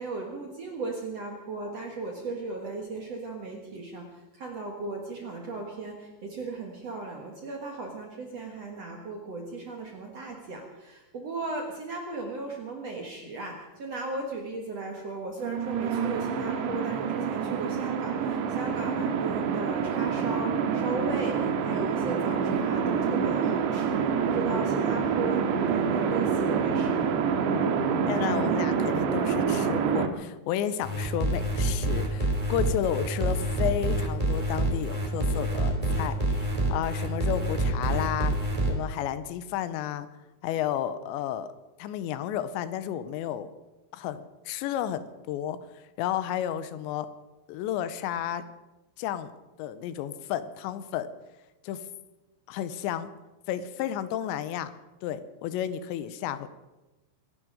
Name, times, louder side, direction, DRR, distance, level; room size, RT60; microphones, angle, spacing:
voice 1, 0.0-25.5 25.7-27.1, right 3 dB, 55° right, 1 dB, 1.8 m, -36 dB
sound 1, 15.4-30.1, right 6 dB, 80° right, 3.4 m, -27 dB
voice 2, 28.1-38.4 38.7-40.1 40.4-41.5 41.8-43.5 43.9-47.1 47.5-48.5 49.0-49.3 49.6-51.1 51.6-51.8 52.5-53.1 53.5-54.7 55.0-56.5, left 10 dB, 85° left, 13 dB, 3.1 m, -32 dB
sound 2, 30.8-38.7, right 1 dB, 10° right, 1.9 m, -27 dB
25.5 x 11.0 x 5.0 m, 1.1 s
omnidirectional pair, 5.1 m